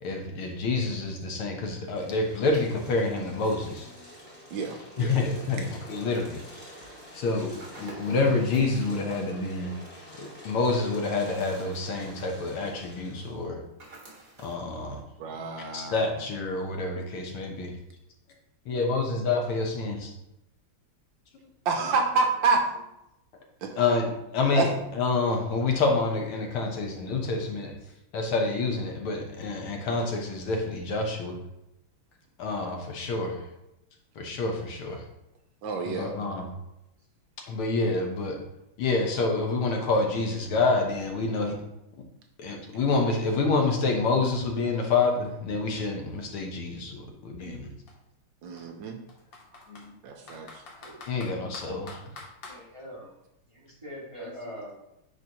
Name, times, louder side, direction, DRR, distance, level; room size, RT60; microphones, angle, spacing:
voice 1, 0.0-3.9 5.0-6.4 6.7-6.8 7.1-9.7 10.2-13.6 14.4-15.0 15.7-17.8 18.7-20.1 23.8-27.7 28.1-31.4 32.4-33.4 34.2-35.0 35.9-36.5 37.5-38.4 38.8-41.6 42.0-42.1 42.4-47.7 49.7-50.0 51.1-52.0, left 3 dB, 85° left, 2 dB, 1.9 m, -28 dB
sound 1, 1.8-13.4, equal, 20° left, 2.5 m, -48 dB
voice 2, 4.5-5.3 15.2-16.2 21.6-22.6 23.6-23.8 24.5-24.7 35.6-36.1 48.4-49.0 50.0-50.6, right 4 dB, 70° right, 3 dB, 1.3 m, -28 dB
sound 2, 7.6-8.8 11.1-11.9 13.8-14.7, right 1 dB, 45° right, 2.0 m, -48 dB
Computer keyboard, 44.7-46.6 47.4-47.6 47.9-48.0 48.6-49.9 50.3-52.6, left 3 dB, 65° left, 1.8 m, -46 dB
voice 3, 52.5-53.1 53.5-54.7, equal, 15° right, -6 dB, 1.7 m, -42 dB
9.4 x 4.0 x 2.9 m, 0.88 s
omnidirectional pair, 2.3 m